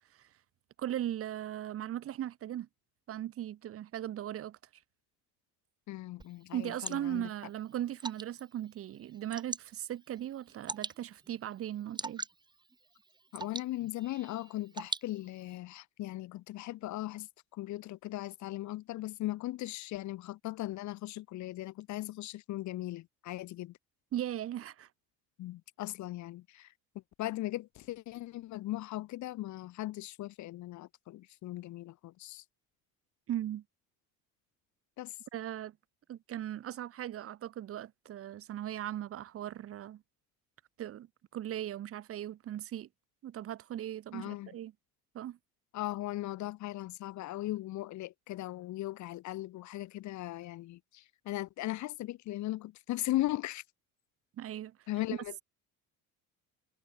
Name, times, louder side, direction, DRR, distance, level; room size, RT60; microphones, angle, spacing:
voice 1, 0.8-2.7 3.1-4.6 6.5-12.2 24.1-24.9 33.3-33.6 35.3-35.8 36.1-40.0 40.8-41.1 41.3-42.9 43.2-44.7 45.1-45.4 54.4-54.8, right 11 dB, 45° right, 2.3 m, -38 dB
voice 2, 5.9-7.3 13.3-23.8 25.4-26.7 27.2-32.4 35.0-35.2 44.1-44.5 45.7-53.6 54.9-55.4, left 16 dB, 60° left, 2.9 m, -38 dB
Water / Drip, 6.2-15.6, right 3 dB, 15° right, 2.5 m, -45 dB
cardioid pair, 150°, 32 cm